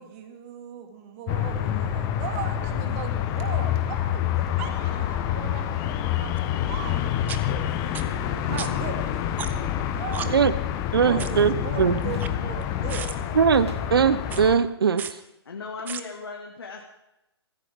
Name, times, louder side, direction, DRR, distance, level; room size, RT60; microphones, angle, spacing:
voice 1, 0.0-7.0 8.5-9.1 9.9-10.4 10.9-13.1, right 7 dB, 30° right, 5 dB, 2.4 m, -38 dB
sound 1, 1.3-14.6, left 10 dB, 25° left, 1.2 m, -27 dB
sound 2, 6.4-6.5 7.3-7.4 7.9-8.0 8.6-8.7 9.4-9.7 10.1-10.3 11.2-11.4 12.0-12.6 12.9-13.1 14.2-14.4 15.0-15.1 15.9-16.0, right 8 dB, 15° right, 0.7 m, -34 dB
sound 3, 8.5-8.7 10.1-11.7 12.1-12.4 12.7-12.8 13.2-14.7, right 2 dB, 80° right, 2.4 m, -41 dB
voice 2, 10.9-12.0 13.3-15.1, right 6 dB, 60° right, 16 dB, 1.0 m, -21 dB
voice 3, 15.5-16.8, left 4 dB, 65° left, 0 dB, 1.9 m, -37 dB
24.5 x 15.0 x 3.7 m, 0.92 s
figure-of-eight pair, 125°, 14 cm